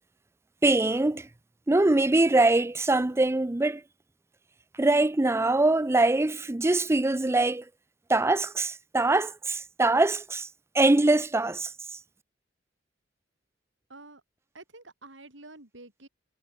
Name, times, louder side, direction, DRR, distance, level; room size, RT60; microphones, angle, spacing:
voice 1, 0.6-1.3 1.7-3.8 4.8-7.6 8.1-10.5 10.7-11.7, right 2 dB, 15° right, 0.5 m, -23 dB
voice 2, 13.9-14.2 14.5-16.1, right 2 dB, 85° right, 6.1 m, -48 dB
head